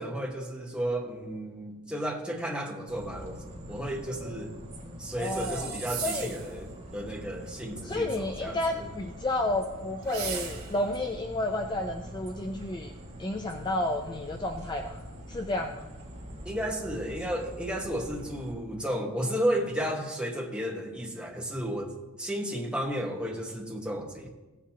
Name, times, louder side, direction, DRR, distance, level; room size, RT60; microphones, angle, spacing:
voice 1, 0.0-4.5 5.0-8.9 16.4-21.9 22.2-24.3, equal, 5° right, 0 dB, 1.2 m, -33 dB
sound 1, 2.9-18.5, equal, 30° right, 1.7 m, -44 dB
voice 2, 5.2-6.3 7.8-12.9 13.2-15.0 15.3-15.8, left 2 dB, 20° left, 4 dB, 0.4 m, -31 dB
sound 2, 5.2-6.5 10.0-10.9, right 7 dB, 70° right, 2.3 m, -37 dB
16.5 x 8.3 x 2.9 m, 1.2 s
head